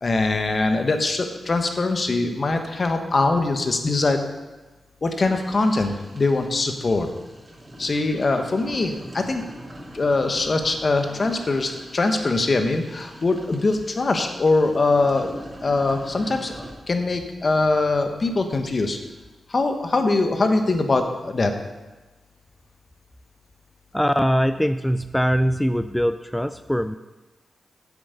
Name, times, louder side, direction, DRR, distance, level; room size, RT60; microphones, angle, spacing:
voice 1, 0.0-4.2 5.0-7.1 7.8-9.4 9.9-15.3 15.6-16.5 16.9-19.0 19.5-21.5, left 3 dB, 50° left, 5 dB, 1.4 m, -22 dB
sound 1, 5.3-16.7, right 1 dB, 30° right, 2.9 m, -42 dB
voice 2, 23.9-27.0, equal, 5° left, 11 dB, 0.4 m, -22 dB
8.9 x 7.9 x 5.2 m, 1.2 s
supercardioid pair, 45°, 0 cm